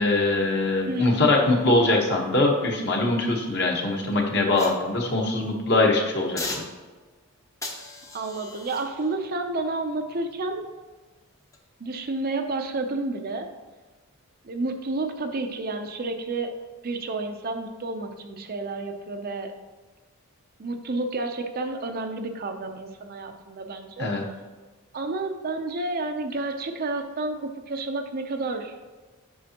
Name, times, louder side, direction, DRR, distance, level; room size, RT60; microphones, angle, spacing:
voice 1, 0.0-6.5 24.0-24.2, left 2 dB, 50° left, 0 dB, 1.2 m, -22 dB
voice 2, 0.9-1.2 8.1-10.7 11.8-13.5 14.4-16.5 16.8-19.5 20.6-24.1 24.9-28.8, right 2 dB, 40° right, 5 dB, 0.6 m, -30 dB
sound 1, 4.6-5.6 6.4-7.2 7.6-10.8 11.4-11.6, left 2 dB, 15° left, 0.7 m, -40 dB
8.5 x 6.1 x 2.9 m, 1.3 s
head